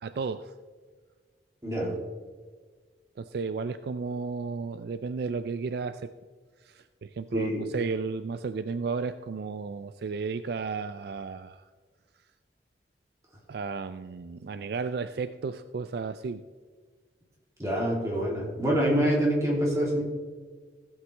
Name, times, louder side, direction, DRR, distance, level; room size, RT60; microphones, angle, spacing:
voice 1, 0.0-0.5 3.2-6.1 6.6-11.6 13.5-16.4, right 4 dB, 60° right, 12 dB, 0.3 m, -33 dB
voice 2, 1.6-2.0 7.3-7.6 17.6-20.0, equal, 15° right, -3 dB, 2.7 m, -26 dB
16.0 x 7.9 x 3.3 m, 1.5 s
head